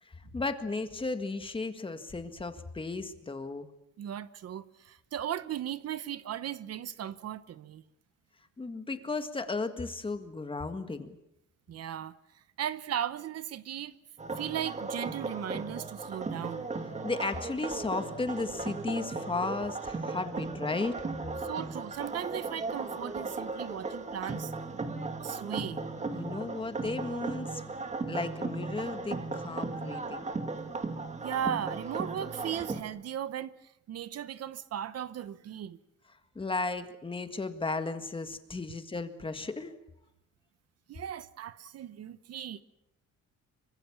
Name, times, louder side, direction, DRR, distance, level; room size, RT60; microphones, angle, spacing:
voice 1, 0.0-3.7 8.6-11.1 17.0-21.0 26.1-27.7 28.1-30.2 36.4-39.7, left 3 dB, 15° left, 1.7 m, -35 dB
voice 2, 4.0-7.8 11.7-13.9 14.3-16.7 21.4-24.5 25.2-25.8 31.2-35.8 40.9-42.6, right 10 dB, 55° right, 0.9 m, -37 dB
sound 1, 14.2-32.8, right 3 dB, 25° right, 2.1 m, -36 dB
26.0 x 24.5 x 7.3 m
cardioid pair, 160°, 30 cm